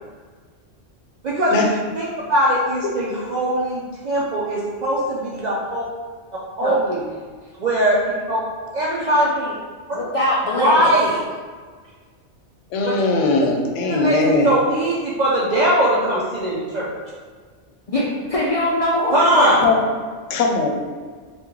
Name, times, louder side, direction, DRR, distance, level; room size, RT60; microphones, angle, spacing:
voice 1, 1.2-1.6 1.9-5.8 6.6-7.0 7.6-8.4 8.7-9.2 9.9-10.0 10.6-11.2 12.8-13.0 13.9-16.9 19.1-19.5, right 1 dB, 60° right, -6 dB, 0.4 m, -20 dB
voice 2, 8.9-9.5 9.9-11.2 17.9-19.8, left 1 dB, 65° left, -5 dB, 0.3 m, -23 dB
voice 3, 12.7-14.5 19.6-19.8 20.3-20.7, left 3 dB, 80° left, 2 dB, 0.9 m, -19 dB
3.6 x 2.4 x 3.0 m, 1.6 s
omnidirectional pair, 1.2 m